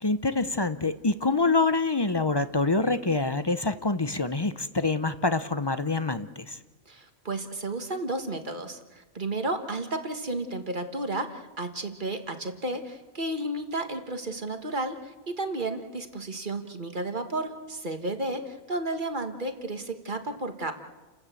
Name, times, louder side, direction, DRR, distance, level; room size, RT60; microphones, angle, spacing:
voice 1, 0.0-6.6, left 3 dB, 25° left, 12 dB, 0.6 m, -26 dB
voice 2, 6.9-20.8, right 2 dB, 40° right, 6 dB, 1.6 m, -32 dB
30.0 x 13.0 x 8.3 m, 1.2 s
omnidirectional pair, 1.3 m